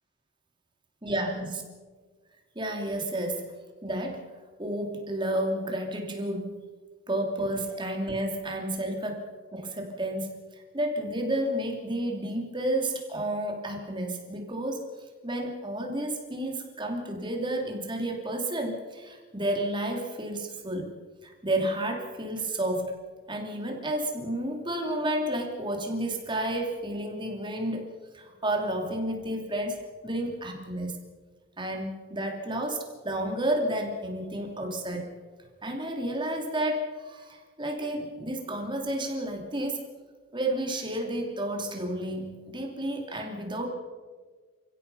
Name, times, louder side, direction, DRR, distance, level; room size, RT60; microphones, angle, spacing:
voice 1, 1.0-1.6 2.5-3.5 3.8-4.3 4.6-6.6 7.1-14.9 15.2-20.9 21.2-23.0 23.3-27.9 28.1-31.0 31.6-35.1 35.6-39.9 40.3-43.7, right 1 dB, 20° right, 1 dB, 3.0 m, -31 dB
29.0 x 16.0 x 5.6 m, 1.5 s
head